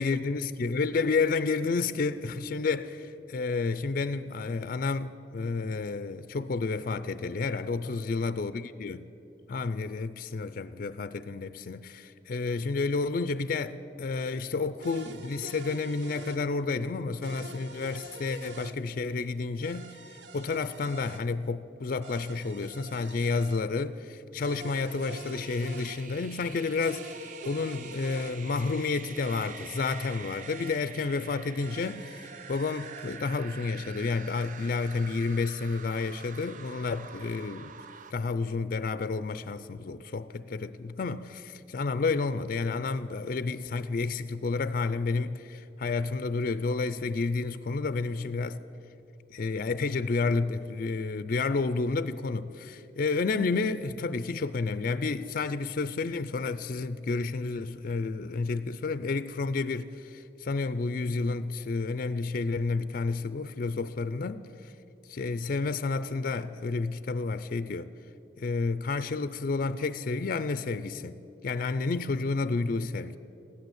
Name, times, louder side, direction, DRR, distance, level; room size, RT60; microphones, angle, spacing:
voice 1, 0.0-9.1 9.5-37.7 38.1-48.6 49.3-64.7 65.1-67.9 68.4-71.2 71.4-73.2, left 4 dB, 55° left, 0.4 m, -30 dB
sound 1, 14.8-16.4 17.2-18.8 19.6-21.2 22.0-23.6 24.4-26.0 26.8-28.3 29.2-30.8 31.6-33.2, right 3 dB, 85° right, 0.8 m, -46 dB
sound 2, 24.7-38.1, right 7 dB, 50° right, 0.5 m, -47 dB
15.5 x 12.0 x 7.9 m
head